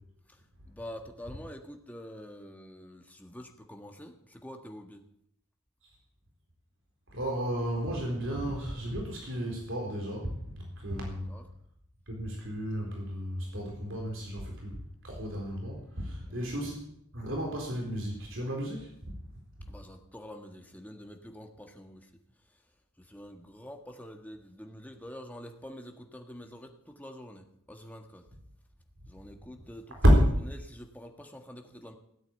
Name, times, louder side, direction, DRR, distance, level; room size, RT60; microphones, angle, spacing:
voice 1, 0.3-5.0 11.3-11.4 16.2-16.5 19.7-22.1 22.4-22.6 23.0-28.2 29.1-30.2 30.4-31.9, equal, 5° left, 3 dB, 1.6 m, -46 dB
voice 2, 7.1-11.3 12.1-14.8 15.0-18.9 30.0-30.2, equal, 60° right, -1 dB, 4.0 m, -31 dB
17.0 x 9.0 x 8.9 m, 0.74 s
head